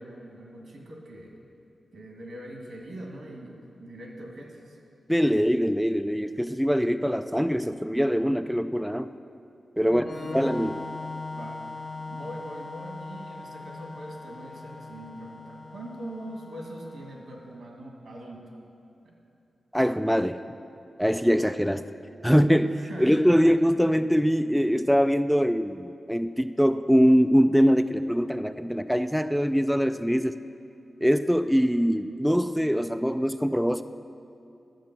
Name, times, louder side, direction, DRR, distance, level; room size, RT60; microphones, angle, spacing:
voice 1, 0.0-1.4 1.9-4.8 9.8-11.0 11.3-18.5 19.0-19.1 22.7-23.4, right 1 dB, 85° right, -1 dB, 2.0 m, -42 dB
voice 2, 5.1-9.1 9.8-10.1 10.3-10.8 19.7-20.4 21.0-21.8 22.2-30.3 31.0-33.8, equal, ahead, 9 dB, 0.3 m, -23 dB
Organ, 10.0-17.5, left 3 dB, 50° left, 1.1 m, -40 dB
11.5 x 7.5 x 6.0 m, 2.6 s
cardioid pair, 70°, 0 cm